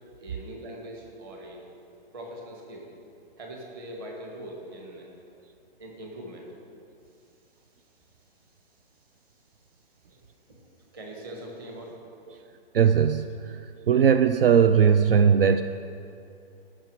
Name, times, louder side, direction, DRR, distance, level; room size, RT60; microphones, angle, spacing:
voice 1, 0.2-1.6 2.1-2.9 3.4-5.1 5.8-6.5 10.1-10.2 10.5-10.6 10.9-11.9, right 1 dB, 20° right, 0 dB, 1.3 m, -41 dB
voice 2, 12.7-15.6, right 7 dB, 65° right, 9 dB, 0.5 m, -20 dB
16.0 x 6.1 x 4.7 m, 2.6 s
hypercardioid pair, 175°, 30 cm